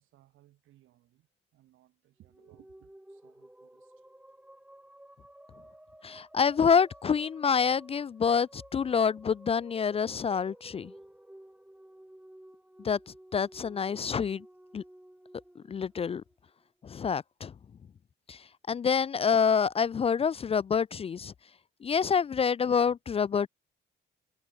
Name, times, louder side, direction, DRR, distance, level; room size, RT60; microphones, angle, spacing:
voice 1, 0.0-4.1, right 14 dB, 85° right, 5.6 m, -63 dB
sound 1, 2.2-16.7, right 1 dB, 5° right, 3.2 m, -54 dB
voice 2, 6.0-10.9 12.8-13.0 13.3-14.4 14.7-14.8 15.6-16.2 16.8-17.5 18.3-21.3 21.8-23.5, left 6 dB, 30° left, 0.3 m, -27 dB
cardioid pair, 90°, 20 cm